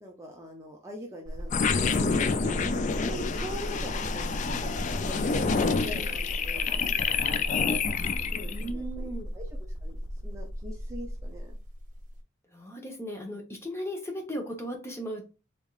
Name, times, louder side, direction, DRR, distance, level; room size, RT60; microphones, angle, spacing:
voice 1, 0.0-1.7 1.9-5.2 5.5-7.5 8.2-9.1 9.3-11.5, equal, 15° right, 0 dB, 0.5 m, -43 dB
sound 1, 1.2-12.2, equal, 40° right, 1.0 m, -36 dB
sound 2, 1.5-8.7, left 5 dB, 35° left, 0.3 m, -28 dB
voice 2, 5.2-6.1 8.5-9.3 12.5-15.3, equal, 10° left, 1 dB, 0.9 m, -37 dB
3.6 x 3.4 x 2.4 m, 0.31 s
head